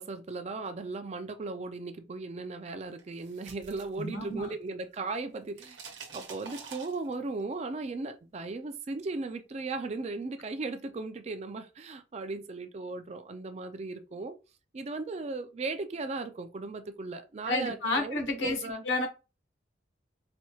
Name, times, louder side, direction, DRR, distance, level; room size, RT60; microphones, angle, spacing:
voice 1, 0.0-14.4 14.7-18.8, right 3 dB, 35° right, 0.4 m, -37 dB
sound 1, 3.0-4.7 5.0-7.4, right 5 dB, 75° right, 0.9 m, -47 dB
voice 2, 4.0-4.5 17.5-19.1, left 2 dB, 85° left, 1.1 m, -31 dB
4.1 x 2.9 x 2.3 m
head